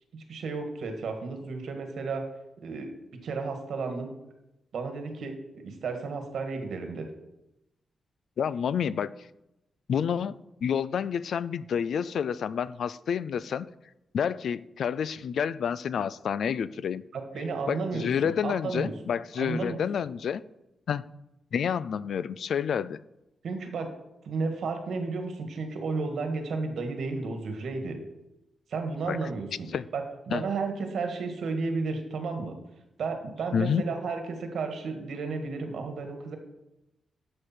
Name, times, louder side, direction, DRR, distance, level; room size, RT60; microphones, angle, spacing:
voice 1, 0.1-2.3 2.6-2.9 3.2-4.1 4.7-7.1 17.1-18.9 19.4-19.8 23.4-23.9 24.2-28.0 28.7-29.7 29.9-32.5 33.0-36.4, right 4 dB, 80° right, 5 dB, 1.7 m, -33 dB
voice 2, 8.4-9.1 9.9-13.7 14.1-17.0 17.7-20.4 20.9-21.0 21.5-23.0 29.1-29.2 29.7-29.9 30.3-30.4 33.5-33.9, left 7 dB, 75° left, 17 dB, 0.4 m, -29 dB
11.0 x 6.8 x 4.4 m, 0.91 s
wide cardioid pair, 120°, 0 cm